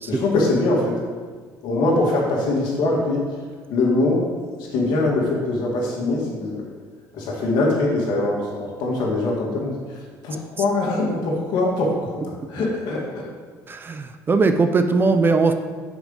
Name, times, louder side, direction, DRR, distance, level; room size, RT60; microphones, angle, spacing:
voice 1, 0.1-1.0 1.6-3.2 3.7-6.6 7.1-12.2 12.5-13.2, left 2 dB, 75° left, -2 dB, 2.1 m, -22 dB
voice 2, 13.7-15.5, right 4 dB, 30° right, 8 dB, 0.5 m, -19 dB
6.1 x 5.0 x 5.6 m, 1.5 s
cardioid pair, 95°, 7 cm